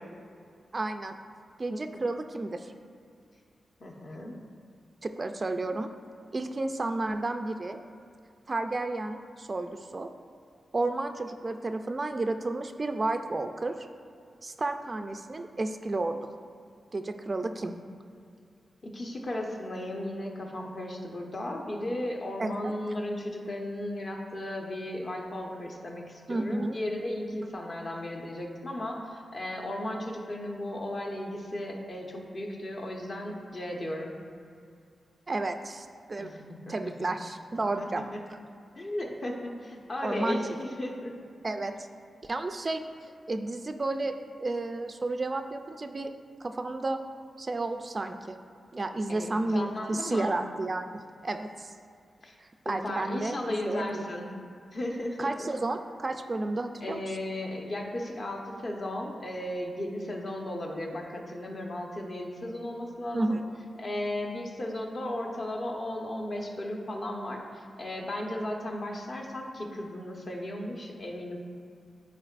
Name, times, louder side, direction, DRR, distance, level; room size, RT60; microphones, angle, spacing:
voice 1, 0.7-1.2 1.6-2.7 5.0-5.9 6.3-7.8 8.5-10.1 10.7-13.9 14.4-16.3 16.9-17.7 22.4-22.7 26.3-26.8 35.3-36.3 36.7-38.4 40.0-40.4 41.4-41.9 42.2-46.2 46.4-47.0 47.4-48.4 48.7-51.7 52.4-54.1 55.2-57.0 63.1-63.4, right 2 dB, 30° right, 7 dB, 0.3 m, -32 dB
voice 2, 3.8-4.3 17.7-17.8 18.8-34.1 36.2-37.1 37.8-38.2 38.8-41.1 49.1-50.4 52.2-52.3 52.6-54.3 54.7-55.5 56.4-56.5 56.8-63.4 63.8-71.4, left 1 dB, 45° left, 0 dB, 1.0 m, -35 dB
12.0 x 4.5 x 2.5 m, 2.4 s
wide cardioid pair, 120°, 0 cm